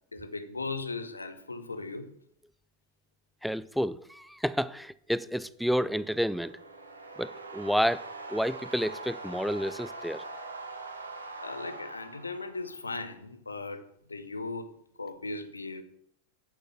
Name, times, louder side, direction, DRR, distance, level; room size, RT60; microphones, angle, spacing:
voice 1, 0.1-2.1 11.4-13.8 14.1-15.8, left 3 dB, 80° left, 1.0 m, -38 dB
voice 2, 3.4-6.5 7.2-10.2, equal, ahead, 0.4 m, -30 dB
sound 1, 5.9-12.9, right 3 dB, 80° right, 1.5 m, -43 dB
9.1 x 7.2 x 6.0 m
figure-of-eight pair, 90°, 0 cm